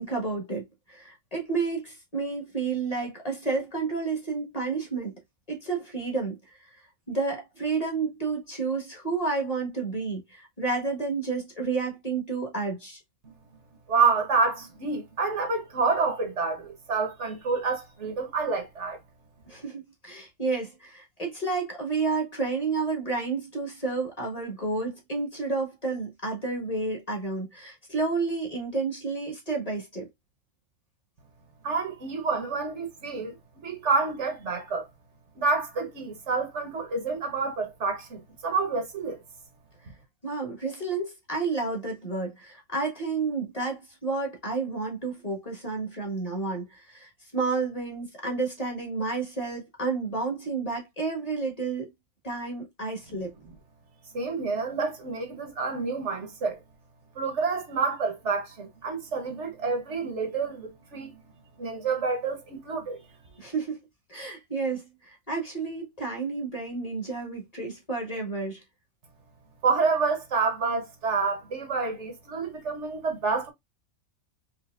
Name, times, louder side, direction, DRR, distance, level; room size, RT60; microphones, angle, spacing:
voice 1, 0.0-5.1 5.5-6.6 7.1-13.0 19.5-30.1 40.2-51.9 52.2-53.3 63.4-63.8 64.1-68.6, right 4 dB, 25° left, 1.4 m, -31 dB
voice 2, 13.9-19.0 31.6-33.4 33.6-34.9 35.4-39.2 53.1-53.2 54.1-56.6 57.1-61.2 61.6-63.0 69.6-73.5, right 4 dB, 55° right, 1.3 m, -28 dB
5.0 x 2.8 x 2.4 m
omnidirectional pair, 1.5 m